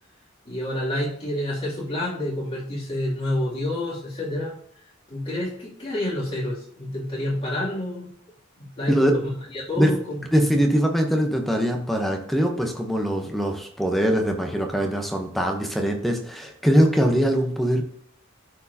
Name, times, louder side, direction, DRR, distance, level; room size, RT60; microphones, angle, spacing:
voice 1, 0.4-4.5 5.1-8.1 8.6-9.2 9.5-10.5, left 1 dB, 30° left, -6 dB, 2.8 m, -28 dB
voice 2, 10.3-17.8, equal, ahead, 2 dB, 0.9 m, -22 dB
12.5 x 4.6 x 2.8 m, 0.64 s
head